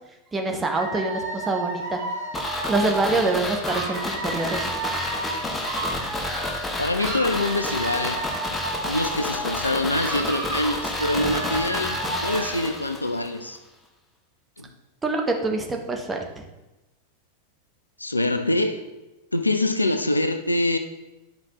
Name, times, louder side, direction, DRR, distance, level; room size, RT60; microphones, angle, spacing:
voice 1, 0.3-2.0 2.7-4.7 15.0-16.4, right 3 dB, 15° right, 3 dB, 1.0 m, -25 dB
Dog / Alarm, 0.8-6.7 7.0-9.7 10.0-12.7, right 2 dB, 60° right, 1.7 m, -33 dB
sound 1, 2.3-13.3 13.6-13.7, left 2 dB, 15° left, 1.1 m, -30 dB
voice 2, 6.8-8.2 8.8-13.6 14.6-14.7 18.0-18.8 19.3-20.8, left 1 dB, 85° left, 8 dB, 0.5 m, -25 dB
10.5 x 5.6 x 2.9 m, 1.0 s
figure-of-eight pair, 90°, 0 cm